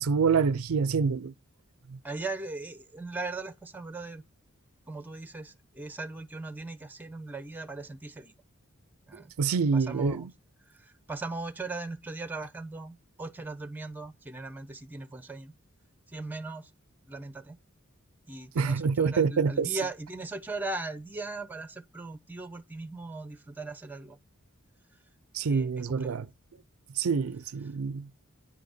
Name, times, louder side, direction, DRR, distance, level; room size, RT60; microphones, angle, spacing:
voice 1, 0.0-1.3 1.9-2.0 9.4-10.3 18.5-19.8 25.3-26.3 27.0-28.2, right 5 dB, 75° right, 0.5 m, -26 dB
voice 2, 2.0-4.2 4.9-8.3 9.1-9.3 9.7-10.3 10.7-15.5 16.1-16.7 17.0-17.6 18.3-24.2 25.4-26.2, right 3 dB, 10° right, 1.0 m, -39 dB
9.8 x 5.0 x 6.5 m
head